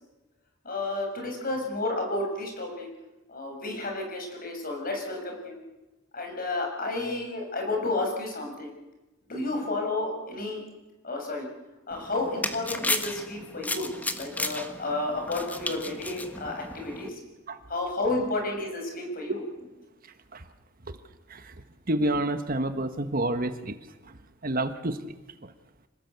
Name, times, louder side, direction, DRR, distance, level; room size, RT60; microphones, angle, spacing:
voice 1, 0.6-2.9 3.3-5.6 6.1-8.7 9.3-10.6 11.0-11.5 11.9-17.2 17.7-19.4, left 2 dB, 50° left, 3 dB, 6.7 m, -31 dB
sound 1, 11.9-17.1, left 2 dB, 10° left, 1.5 m, -34 dB
voice 2, 21.9-23.8 24.4-25.1 25.4-25.5, right 1 dB, 50° right, 10 dB, 1.4 m, -28 dB
26.5 x 19.0 x 8.2 m, 1.1 s
head